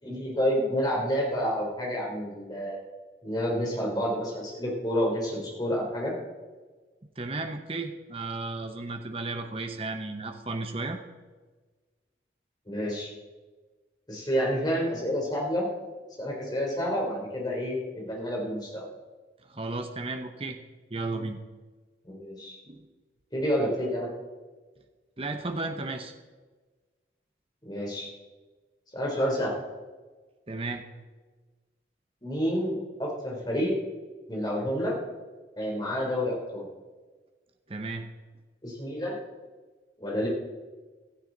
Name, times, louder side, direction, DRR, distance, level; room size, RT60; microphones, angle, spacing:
voice 1, 0.0-2.8 3.2-6.1 12.7-13.1 14.1-15.7 16.2-18.8 22.0-22.6 23.3-24.1 27.6-28.1 28.9-29.5 32.2-33.7 34.3-35.0 35.6-36.7 38.6-39.2 40.0-40.3, equal, 25° left, -2 dB, 3.6 m, -29 dB
voice 2, 7.2-11.0 19.5-20.6 20.9-21.4 22.7-22.9 25.2-26.1 30.5-30.8 37.7-38.1, right 3 dB, 30° right, 5 dB, 1.0 m, -34 dB
16.0 x 13.5 x 4.0 m, 1.3 s
head